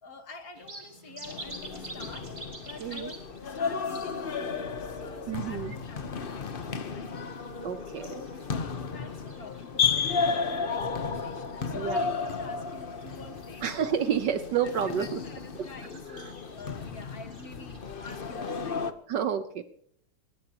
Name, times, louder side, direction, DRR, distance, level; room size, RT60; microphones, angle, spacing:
voice 1, 0.0-2.3 2.7-7.5 7.8-8.2 8.5-13.6 14.6-18.8, left 3 dB, 45° left, 6 dB, 1.8 m, -48 dB
sound 1, 0.5-18.6, right 2 dB, 20° right, 2.8 m, -50 dB
sound 2, 1.2-18.9, left 5 dB, 70° left, 0.5 m, -33 dB
voice 2, 2.8-3.1 5.3-5.8 7.6-8.1 11.7-12.0 13.6-15.2 16.1-16.2 19.1-19.6, right 8 dB, 65° right, 11 dB, 1.2 m, -29 dB
23.0 x 19.0 x 2.9 m, 0.62 s
omnidirectional pair, 2.4 m